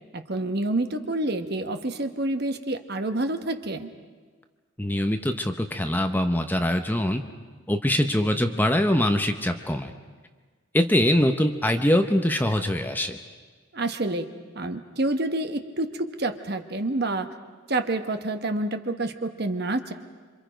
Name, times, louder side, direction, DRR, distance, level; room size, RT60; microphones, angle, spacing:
voice 1, 0.1-3.9 13.7-17.3 17.7-19.9, right 2 dB, 50° right, 8 dB, 1.2 m, -28 dB
voice 2, 4.8-7.2 7.7-9.9 10.7-13.2, left 1 dB, 10° left, 6 dB, 0.8 m, -23 dB
27.0 x 25.5 x 5.1 m, 1.5 s
head